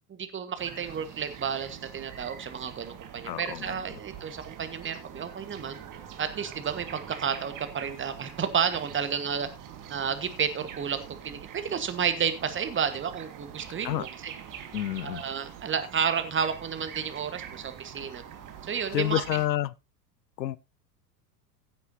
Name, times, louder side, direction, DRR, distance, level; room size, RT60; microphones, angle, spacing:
voice 1, 0.1-5.8 6.2-9.5 9.9-14.3 15.0-18.2 18.6-19.2, right 7 dB, 25° right, 1.6 m, -31 dB
sound 1, 0.6-19.5, right 9 dB, 40° right, 2.0 m, -44 dB
voice 2, 3.3-3.8 13.8-14.1 14.7-15.2 18.9-19.7 20.4-20.6, left 13 dB, 90° left, 0.6 m, -29 dB
15.5 x 8.2 x 2.8 m
hypercardioid pair, 85°, 49 cm